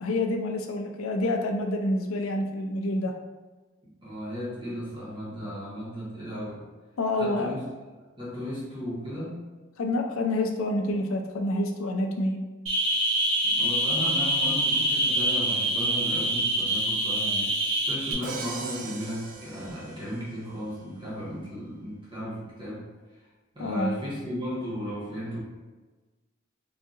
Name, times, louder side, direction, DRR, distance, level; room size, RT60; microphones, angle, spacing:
voice 1, 0.0-3.1 7.0-7.6 9.8-12.4 23.6-23.9, left 1 dB, 80° left, 3 dB, 0.5 m, -27 dB
voice 2, 4.0-6.7 7.1-7.7 8.2-9.4 13.4-17.5 17.8-22.9 23.5-25.4, equal, 25° right, -8 dB, 1.2 m, -35 dB
sound 1, 12.7-18.1, right 1 dB, 90° right, 1.0 m, -25 dB
Crash cymbal, 18.2-20.4, right 4 dB, 45° right, 0.5 m, -39 dB
4.0 x 2.7 x 2.4 m, 1.3 s
head